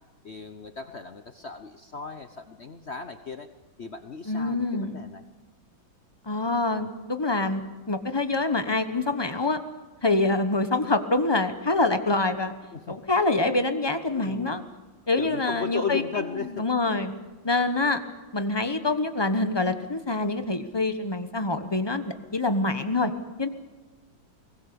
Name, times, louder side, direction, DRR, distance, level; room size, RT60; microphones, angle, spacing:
voice 1, 0.2-3.5 3.8-5.2 12.7-13.0 14.1-14.6 15.2-16.6, left 5 dB, 50° left, 8 dB, 0.8 m, -36 dB
voice 2, 4.3-5.0 6.3-7.6 7.9-9.6 10.0-12.5 12.9-14.6 15.1-16.0 16.5-17.1 17.4-18.0 18.3-23.1 23.4-23.5, left 2 dB, 20° left, 9 dB, 0.8 m, -25 dB
22.5 x 20.0 x 6.9 m, 1.3 s
omnidirectional pair, 2.2 m